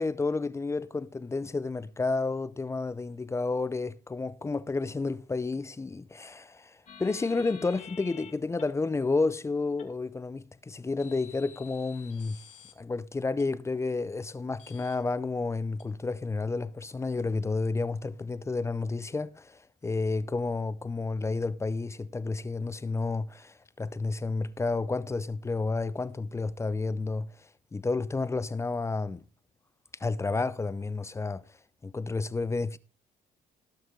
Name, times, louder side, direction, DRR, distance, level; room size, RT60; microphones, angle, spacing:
voice 1, 0.0-12.4 12.8-29.2 30.0-31.4 31.8-32.8, left 3 dB, 15° left, 0.6 m, -31 dB
sound 1, 6.9-8.3 8.6-8.7 9.8-9.9 11.0-12.7 13.4-13.5 14.6-14.9 15.8-15.9, left 7 dB, 45° left, 2.4 m, -50 dB
17.5 x 6.1 x 3.8 m
cardioid pair, 110°, 17 cm